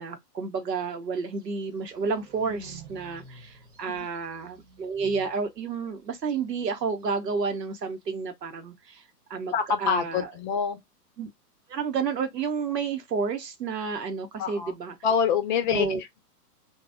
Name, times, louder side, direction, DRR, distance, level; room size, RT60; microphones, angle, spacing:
voice 1, 0.0-9.0 9.3-10.3 11.2-11.3 11.7-15.0 15.7-16.0, right 5 dB, 80° right, 1.0 m, -31 dB
sound 1, 1.4-3.3 3.7-3.8 4.1-4.2 4.5-5.5 5.8-7.2, right 7 dB, 30° right, 0.9 m, -54 dB
sound 2, 1.5-5.5, right 3 dB, 60° right, 1.1 m, -50 dB
voice 2, 9.5-10.8 14.4-14.7 15.0-16.2, left 7 dB, 30° left, 0.6 m, -26 dB
2.8 x 2.3 x 3.5 m
hypercardioid pair, 115°, 48 cm